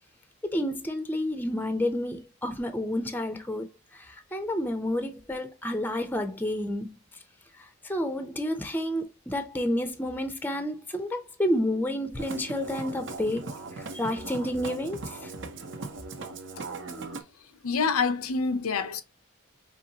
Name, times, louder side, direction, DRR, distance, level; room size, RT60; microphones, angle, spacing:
voice 1, 0.4-6.9 7.6-15.3, left 1 dB, 10° left, 0.6 m, -30 dB
Musical instrument, 12.1-17.2, right 3 dB, 55° right, 0.9 m, -39 dB
voice 2, 17.6-19.0, left 5 dB, 70° left, 0.6 m, -26 dB
5.2 x 3.1 x 2.8 m
head